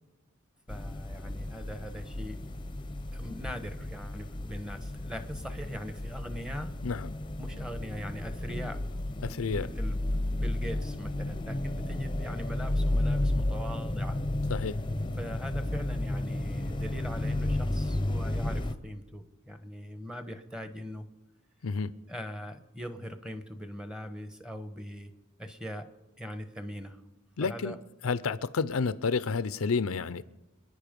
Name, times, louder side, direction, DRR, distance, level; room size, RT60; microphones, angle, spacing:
sound 1, 0.7-18.7, left 1 dB, 25° left, 0.7 m, -32 dB
voice 1, 0.7-2.4 3.1-6.7 7.4-8.8 9.5-10.0 10.3-14.2 15.2-21.1 22.1-25.1 25.4-25.9 26.2-27.0 27.4-27.8, equal, 5° right, 1.1 m, -41 dB
voice 2, 9.2-9.7 14.5-14.8 21.6-21.9 27.4-27.8 28.0-30.2, left 5 dB, 80° left, 0.6 m, -30 dB
28.0 x 9.9 x 5.2 m
head